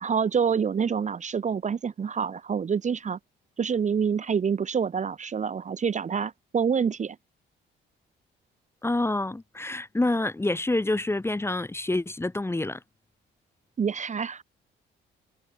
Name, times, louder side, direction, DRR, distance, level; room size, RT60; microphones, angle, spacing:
voice 1, 0.0-3.2 3.6-7.2 13.8-14.4, right 6 dB, 35° right, 0.9 m, -27 dB
voice 2, 8.8-12.8, left 2 dB, 10° left, 1.2 m, -27 dB
cardioid pair, 90°, 20 cm